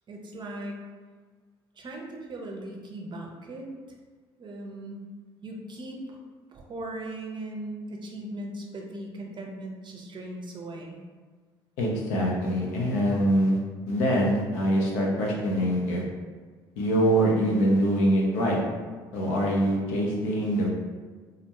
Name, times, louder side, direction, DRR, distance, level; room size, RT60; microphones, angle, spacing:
voice 1, 0.1-0.8 1.8-3.7 4.4-5.0 5.4-6.2 6.5-11.0, right 1 dB, 40° right, 0 dB, 0.6 m, -38 dB
voice 2, 11.8-13.6 13.9-16.0 16.8-18.6 19.1-20.7, equal, 70° left, -2 dB, 0.6 m, -24 dB
2.4 x 2.1 x 2.9 m, 1.5 s
hypercardioid pair, 60°, 12 cm